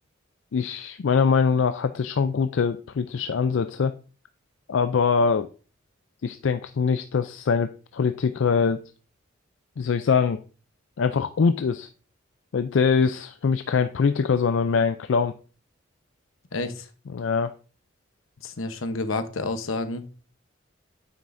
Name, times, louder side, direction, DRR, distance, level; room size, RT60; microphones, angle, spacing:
voice 1, 0.5-3.9 4.7-5.5 6.2-8.8 9.8-10.4 11.0-11.9 12.5-15.3 17.1-17.5, left 5 dB, 65° left, 10 dB, 0.4 m, -23 dB
voice 2, 16.5-16.9 18.4-20.1, left 3 dB, 80° left, 9 dB, 0.9 m, -29 dB
9.1 x 7.5 x 2.6 m, 0.37 s
head